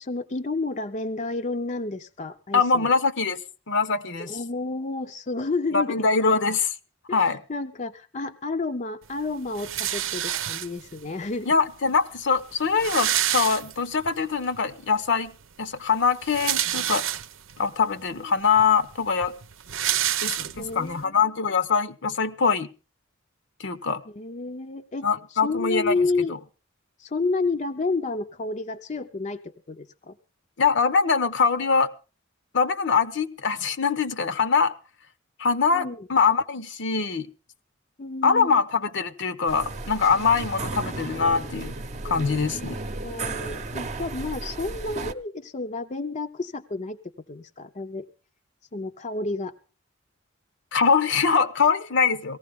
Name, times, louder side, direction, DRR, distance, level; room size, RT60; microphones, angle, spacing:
voice 1, 0.0-2.9 4.2-6.0 7.1-11.5 18.1-18.3 20.6-21.1 24.1-26.3 27.0-30.2 35.7-36.1 38.0-38.6 43.0-47.0 47.3-48.1 48.7-49.5, left 3 dB, 40° left, 0.6 m, -30 dB
voice 2, 2.5-3.4 3.7-4.3 5.7-6.7 7.1-7.4 11.5-15.3 15.6-17.1 17.6-19.3 20.2-22.7 23.6-24.0 25.0-25.9 30.6-31.9 32.5-34.7 35.4-37.3 38.2-41.7 42.0-42.8 50.7-52.4, left 5 dB, 65° left, 0.9 m, -23 dB
sound 1, 9.6-11.0 11.9-12.0 12.2-12.3 12.5-14.1 14.5-14.6 16.0-17.6 18.2-18.3 18.6-20.9, right 11 dB, 85° right, 0.7 m, -28 dB
sound 2, 39.5-45.1, right 3 dB, 35° right, 0.8 m, -34 dB
18.0 x 15.0 x 3.5 m
head